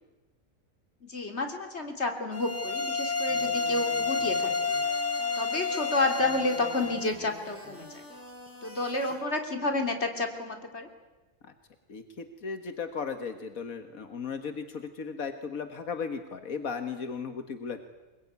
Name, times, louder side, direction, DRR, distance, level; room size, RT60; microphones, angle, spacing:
voice 1, 1.0-4.7 5.4-8.0 8.6-10.9, left 2 dB, 50° left, 4 dB, 3.6 m, -30 dB
sound 1, 2.3-7.1, left 4 dB, 15° left, 0.6 m, -30 dB
sound 2, 3.3-9.1, equal, 10° right, 7.5 m, -47 dB
voice 2, 11.9-17.8, left 5 dB, 90° left, 7 dB, 2.0 m, -36 dB
25.5 x 22.0 x 9.6 m, 1.1 s
omnidirectional pair, 1.4 m